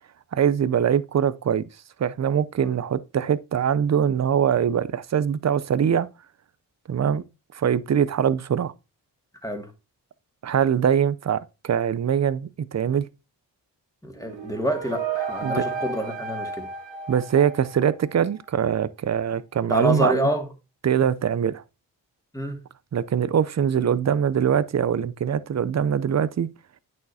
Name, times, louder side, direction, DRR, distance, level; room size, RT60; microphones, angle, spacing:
voice 1, 0.3-1.6 2.0-6.1 6.9-7.2 7.5-8.7 10.4-13.0 15.4-15.6 17.1-20.3 20.8-21.6 22.9-26.5, right 8 dB, 40° right, 0.5 m, -23 dB
voice 2, 14.0-16.6 19.7-20.5 22.3-22.6, equal, 10° left, 2.1 m, -27 dB
sound 1, 14.2-18.1, right 5 dB, 75° right, 1.0 m, -32 dB
8.6 x 6.3 x 2.7 m
supercardioid pair, 40°, 44 cm